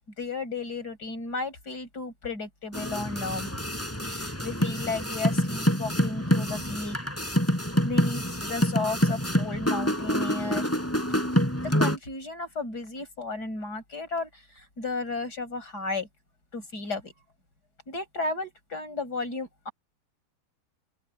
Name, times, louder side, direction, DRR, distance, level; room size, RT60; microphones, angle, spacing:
voice 1, 0.2-3.5 4.0-7.0 7.8-10.7 11.6-16.1 16.5-17.1 17.9-19.7, left 3 dB, 70° left, 6.8 m, -34 dB
sound 1, 2.7-12.0, equal, 10° left, 5.1 m, -27 dB
open air
omnidirectional pair, 1.8 m